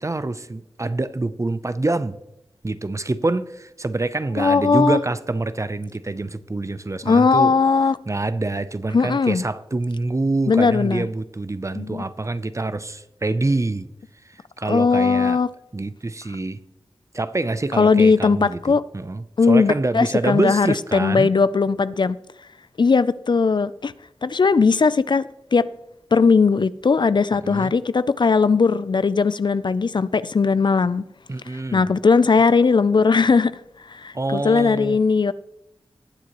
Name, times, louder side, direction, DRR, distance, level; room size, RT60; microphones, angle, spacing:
voice 1, 0.0-2.2 2.6-7.5 8.1-13.9 14.3-15.4 15.7-16.6 17.1-21.3 27.3-27.7 31.3-31.9 34.1-35.0, right 2 dB, 30° right, 0.6 m, -26 dB
voice 2, 4.4-5.0 7.0-8.0 8.9-9.4 10.5-11.1 11.8-12.0 14.7-15.5 17.8-18.9 19.4-20.7 20.9-22.2 22.8-23.9 24.2-25.7 26.1-31.0 31.5-33.6 33.9-35.3, left 4 dB, 50° left, 0.4 m, -18 dB
20.0 x 7.5 x 3.0 m
wide cardioid pair, 50°, 10 cm